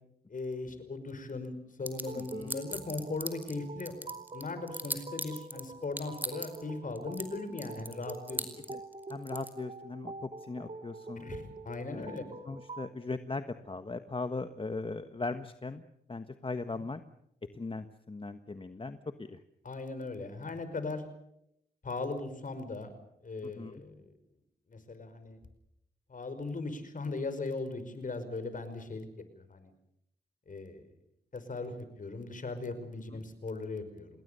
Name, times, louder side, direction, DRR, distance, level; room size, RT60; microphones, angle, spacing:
voice 1, 0.3-1.5 1.8-8.5 11.2-12.3 19.6-21.0 21.8-22.9 23.2-24.0 24.7-25.4 26.1-29.1 29.3-29.7 30.5-30.9 31.3-34.2, left 3 dB, 50° left, 10 dB, 5.4 m, -38 dB
sound 1, 1.9-3.5 3.8-5.6 6.0-6.6 7.0-7.2 7.6-9.5, right 1 dB, 10° right, 4.6 m, -37 dB
sound 2, 1.9-12.9, right 3 dB, 40° right, 2.4 m, -45 dB
voice 2, 2.1-2.6 8.7-8.8 9.1-11.3 11.9-12.2 12.5-15.8 16.1-17.0 17.5-19.4 23.4-23.8, left 3 dB, 30° left, 9 dB, 1.4 m, -39 dB
28.0 x 21.0 x 7.0 m, 0.77 s
cardioid pair, 70°, 17 cm